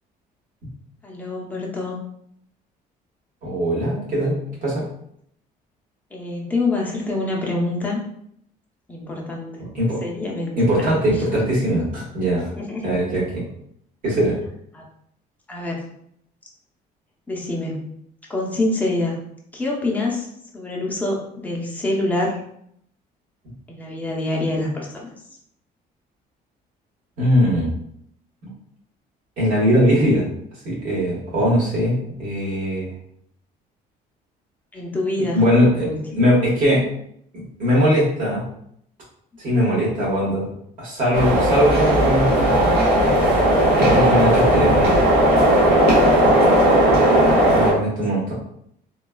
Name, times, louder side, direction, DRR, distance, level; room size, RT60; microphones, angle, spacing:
voice 1, 1.0-2.0 6.1-8.0 8.9-9.6 10.0-10.9 12.6-12.8 14.7-14.8 15.5-15.8 17.3-17.9 18.3-19.2 19.5-20.3 20.5-22.4 23.7-25.1 34.7-35.5 35.7-36.0 43.6-44.0 48.1-48.2, left 2 dB, 10° left, -3 dB, 0.6 m, -26 dB
voice 2, 3.4-4.8 9.6-10.0 10.6-12.5 12.8-13.4 14.0-14.4 23.4-23.5 27.2-27.7 29.4-30.2 30.6-32.9 35.3-36.8 37.3-38.5 39.4-40.5 40.8-42.7 43.8-45.0 47.5-48.3, equal, 55° right, -5 dB, 1.4 m, -20 dB
sound 1, 41.1-47.7, right 1 dB, 80° right, 1.1 m, -16 dB
3.1 x 2.3 x 2.2 m, 0.71 s
cardioid pair, 135°, 16 cm